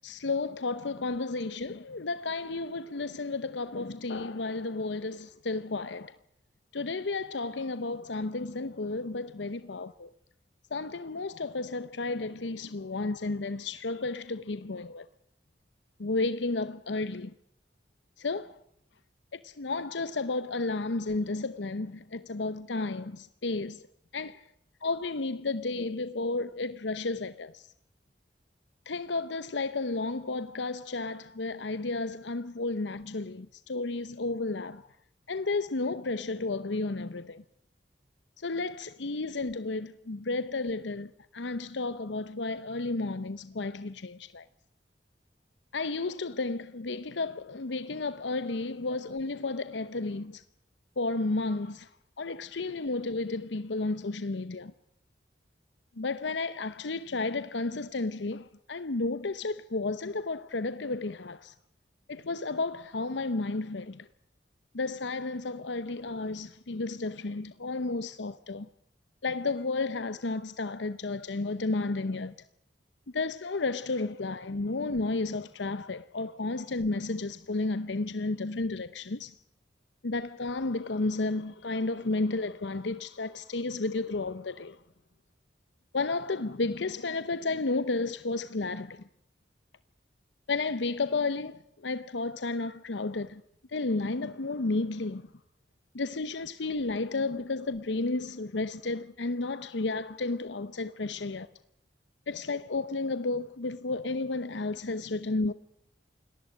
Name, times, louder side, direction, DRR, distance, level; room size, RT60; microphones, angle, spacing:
voice 1, 0.0-6.1 6.7-10.1 10.7-15.1 16.0-17.3 18.2-18.6 19.3-23.9 24.1-24.4 24.8-27.6 28.9-34.9 35.3-37.4 38.4-44.5 45.7-50.4 51.0-51.9 52.2-54.7 56.0-61.5 62.1-64.1 64.7-68.7 69.2-72.3 73.1-79.3 80.0-84.8 85.9-89.0 90.5-93.4 93.7-95.3 95.9-101.5 102.3-105.5, left 3 dB, 85° left, 0.8 m, -32 dB
28.5 x 19.0 x 6.4 m
head